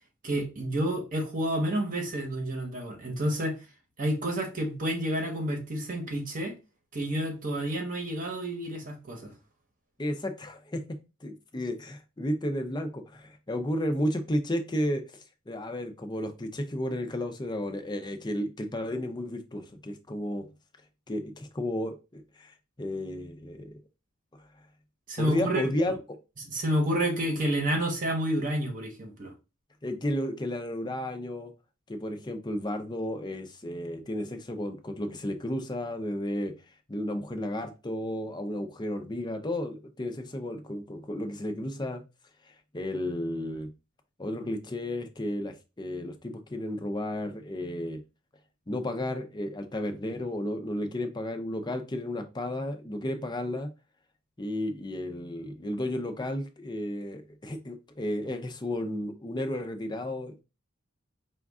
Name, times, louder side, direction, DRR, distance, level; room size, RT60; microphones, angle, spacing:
voice 1, 0.2-3.6 4.0-6.5 6.9-9.3 25.1-25.9 26.5-29.3, right 1 dB, 40° right, 1.0 m, -29 dB
voice 2, 10.0-20.5 21.1-23.7 25.2-26.2 29.8-31.5 31.9-36.5 36.9-42.0 42.4-43.7 44.2-48.0 48.7-53.7 54.4-60.4, left 1 dB, 20° left, 0.6 m, -33 dB
5.1 x 2.4 x 3.5 m
head